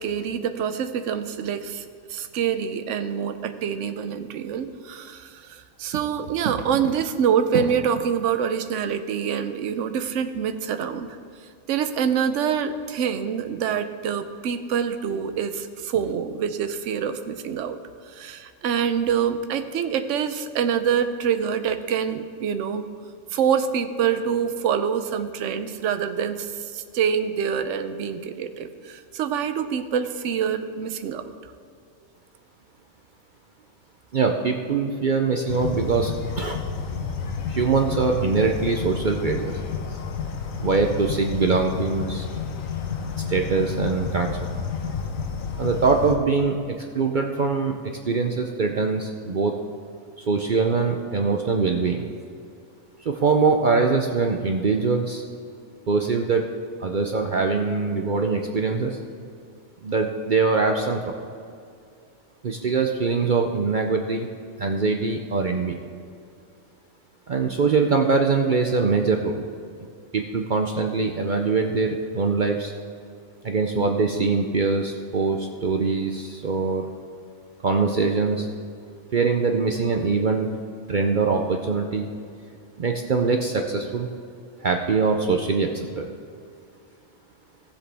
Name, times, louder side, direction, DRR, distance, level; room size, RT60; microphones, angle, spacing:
voice 1, 0.0-1.8 2.1-11.2 11.7-17.8 18.1-22.9 23.3-31.3, right 7 dB, 70° right, 9 dB, 1.0 m, -26 dB
voice 2, 34.1-36.6 37.5-39.6 40.6-42.3 43.3-44.5 45.6-47.8 48.1-49.5 50.3-52.1 53.0-55.2 55.9-56.4 56.8-59.0 59.8-61.2 62.4-64.3 64.6-65.8 67.3-69.4 70.1-72.7 73.4-76.8 77.6-78.5 79.1-80.5 80.9-82.1 82.8-84.1 84.6-86.0, right 4 dB, 50° right, 3 dB, 0.6 m, -23 dB
sound 1, 35.5-46.2, left 6 dB, 85° left, 1.3 m, -30 dB
15.5 x 7.7 x 3.4 m, 2.3 s
omnidirectional pair, 1.4 m